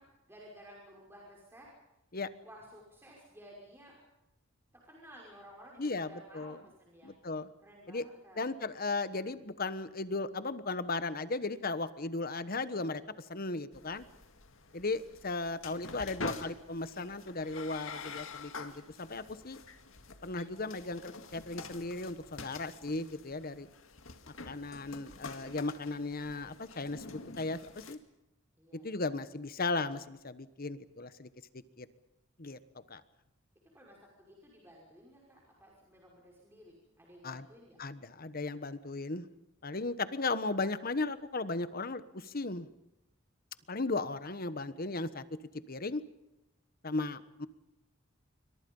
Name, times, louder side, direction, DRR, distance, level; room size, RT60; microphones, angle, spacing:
voice 1, 0.0-1.7 2.4-4.0 4.8-7.1 7.6-8.5 28.6-28.9 33.7-37.8, equal, 10° right, -3 dB, 5.7 m, -55 dB
voice 2, 5.8-6.6 7.0-7.5 7.9-8.0 8.4-13.0 13.3-14.0 14.7-19.6 20.2-23.7 24.5-28.0 28.7-31.3 31.8-31.9 32.4-32.6 32.9-33.0 37.2-37.4 37.8-39.3 39.6-42.7 43.7-45.2 45.7-46.0 46.8-47.5, left 3 dB, 45° left, 13 dB, 1.3 m, -36 dB
sound 1, 13.7-28.0, left 4 dB, 70° left, 2.1 m, -47 dB
28.0 x 24.0 x 5.5 m, 0.91 s
head